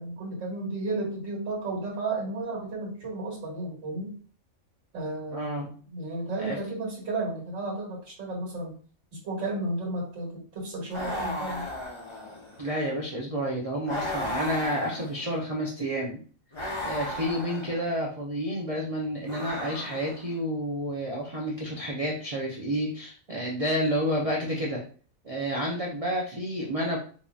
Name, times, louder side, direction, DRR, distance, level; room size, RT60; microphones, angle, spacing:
voice 1, 0.0-4.1 4.9-8.7 9.2-11.7, right 2 dB, 65° right, -3 dB, 1.8 m, -33 dB
voice 2, 5.3-5.7 6.4-6.6 12.6-16.2 16.8-24.8 25.2-27.0, equal, 40° right, -2 dB, 0.5 m, -30 dB
sound 1, 10.9-12.7 13.9-15.4 16.5-17.9 19.2-20.3, left 1 dB, 25° left, 0.8 m, -35 dB
4.5 x 2.7 x 2.4 m, 0.42 s
omnidirectional pair, 1.4 m